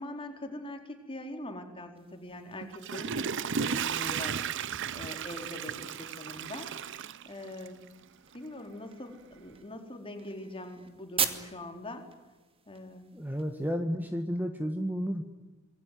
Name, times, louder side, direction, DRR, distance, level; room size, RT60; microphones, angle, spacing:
voice 1, 0.0-7.8 8.3-12.1 12.7-13.1, left 1 dB, 25° left, 4 dB, 4.4 m, -43 dB
sound 1, 1.9-13.7, right 7 dB, 25° right, 2.4 m, -42 dB
Water / Toilet flush, 2.6-7.9 8.3-8.4, right 7 dB, 60° right, 0.8 m, -34 dB
voice 2, 13.1-15.2, equal, 10° right, 6 dB, 1.7 m, -32 dB
27.0 x 21.5 x 9.7 m, 1.2 s
head